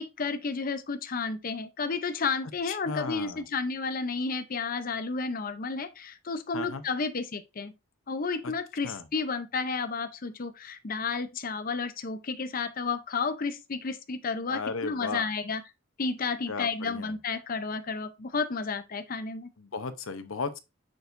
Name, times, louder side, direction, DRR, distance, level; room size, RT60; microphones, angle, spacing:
voice 1, 0.0-7.7 8.1-15.6 16.0-19.5, left 4 dB, 45° left, 0.6 m, -32 dB
voice 2, 2.6-3.4 6.5-6.8 8.4-8.5 8.8-9.0 14.5-15.3 16.5-17.1 19.6-20.6, left 4 dB, 75° left, 0.8 m, -35 dB
6.9 x 6.2 x 2.6 m
head